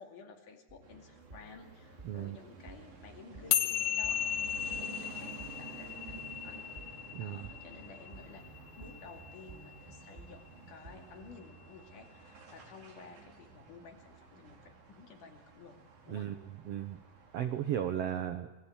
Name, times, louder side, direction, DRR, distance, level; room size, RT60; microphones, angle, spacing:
voice 1, 0.0-15.8 16.1-16.3, left 5 dB, 65° left, 3 dB, 4.0 m, -53 dB
sound 1, 0.7-11.3, right 3 dB, 15° right, 2.3 m, -55 dB
sound 2, 0.8-18.0, right 5 dB, 60° right, 4.3 m, -52 dB
voice 2, 2.0-2.4 7.1-7.5 16.1-16.4 16.6-17.0 17.3-18.5, right 10 dB, 75° right, 8 dB, 1.4 m, -35 dB
sound 3, 3.5-10.1, left 10 dB, 85° left, 2.8 m, -36 dB
27.5 x 20.0 x 7.3 m, 1.1 s
omnidirectional pair, 4.1 m